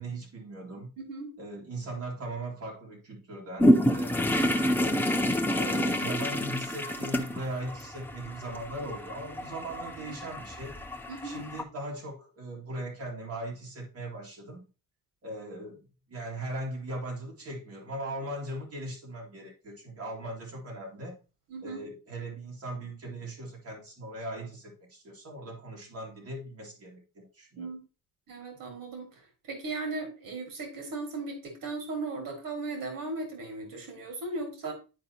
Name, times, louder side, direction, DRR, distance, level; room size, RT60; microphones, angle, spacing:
voice 1, 0.0-0.9 1.4-4.3 4.8-5.0 5.5-10.7 11.2-14.6 15.2-15.8 16.1-21.1 21.6-27.7, right 1 dB, 45° right, -2 dB, 2.2 m, -39 dB
voice 2, 1.0-1.3 11.1-11.4 21.5-21.8 27.6-27.8 28.3-34.7, right 3 dB, 75° right, 3 dB, 1.9 m, -37 dB
sound 1, 3.6-11.6, equal, 5° left, 0.4 m, -28 dB
10.5 x 4.9 x 2.8 m, 0.32 s
cardioid pair, 180°, 33 cm